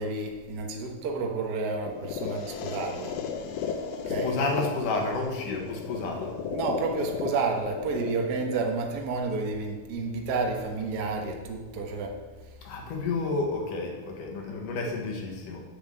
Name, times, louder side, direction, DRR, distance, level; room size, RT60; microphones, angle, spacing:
voice 1, 0.0-3.2 4.1-4.4 6.5-12.2, right 3 dB, 75° right, 2 dB, 0.9 m, -30 dB
sound 1, 1.9-9.9, left 6 dB, 85° left, 2.6 m, -35 dB
voice 2, 4.0-6.3 12.6-15.6, left 3 dB, 70° left, 1 dB, 3.1 m, -30 dB
9.5 x 7.2 x 8.0 m, 1.3 s
omnidirectional pair, 4.0 m